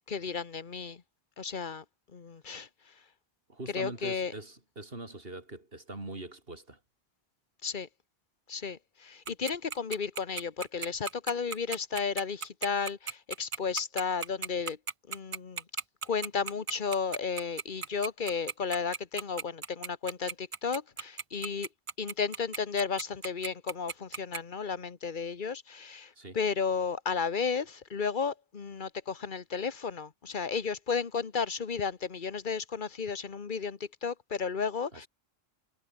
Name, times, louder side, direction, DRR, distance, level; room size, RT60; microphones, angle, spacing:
voice 1, 0.1-1.0 1.4-1.8 2.1-3.0 3.7-4.3 7.6-7.9 8.5-14.8 15.1-15.6 16.1-21.7 22.0-35.1, left 5 dB, 50° left, 1.4 m, -33 dB
voice 2, 3.5-6.8 26.2-26.4 34.9-35.1, right 2 dB, 65° right, 4.3 m, -42 dB
Tick-tock, 9.3-24.4, right 6 dB, 40° right, 0.6 m, -35 dB
omnidirectional pair, 1.0 m